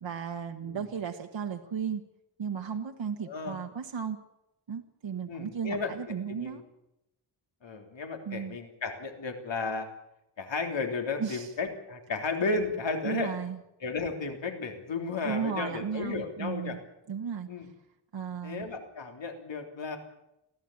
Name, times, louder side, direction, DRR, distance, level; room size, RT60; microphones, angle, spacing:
voice 1, 0.0-2.0 2.4-4.2 4.7-6.6 8.2-8.6 11.2-11.5 13.0-13.6 15.2-16.8 17.1-17.5 18.1-18.7, right 7 dB, 80° right, 3 dB, 1.5 m, -35 dB
voice 2, 3.3-3.6 5.3-5.9 6.3-6.6 7.6-9.9 10.4-13.4 13.8-16.8 17.5-17.7 18.4-20.0, left 4 dB, 75° left, 4 dB, 3.4 m, -33 dB
23.0 x 15.5 x 8.6 m, 0.88 s
wide cardioid pair, 120°, 45 cm